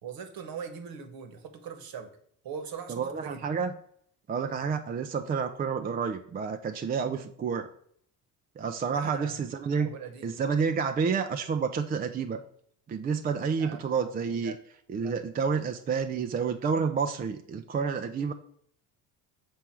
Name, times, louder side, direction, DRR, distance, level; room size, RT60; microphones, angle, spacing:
voice 1, 0.0-2.1 2.4-3.4 8.9-9.4 9.8-10.4 13.6-13.8 14.3-14.6 14.9-15.2, right 6 dB, 50° right, 7 dB, 1.2 m, -41 dB
voice 2, 2.9-3.7 4.3-7.7 8.6-9.9 10.2-12.4 12.9-14.5 14.9-18.3, right 6 dB, 20° right, 7 dB, 0.4 m, -29 dB
6.0 x 3.5 x 4.5 m, 0.65 s
hypercardioid pair, 60°, 44 cm